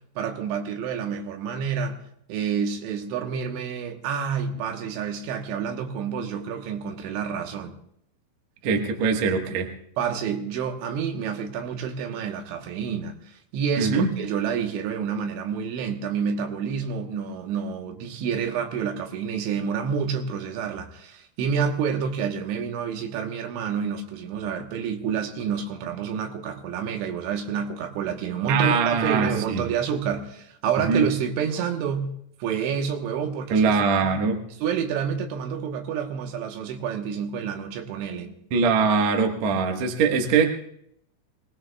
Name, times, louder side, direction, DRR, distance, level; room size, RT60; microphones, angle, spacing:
voice 1, 0.2-2.0 2.3-7.7 10.0-32.1 32.4-34.1 34.6-38.4, right 7 dB, 85° right, 3.5 m, -28 dB
voice 2, 8.6-9.7 13.8-14.1 28.5-29.6 30.8-31.0 33.5-34.4 38.5-40.5, right 5 dB, 65° right, 1.7 m, -22 dB
25.0 x 19.0 x 2.3 m
omnidirectional pair, 5.2 m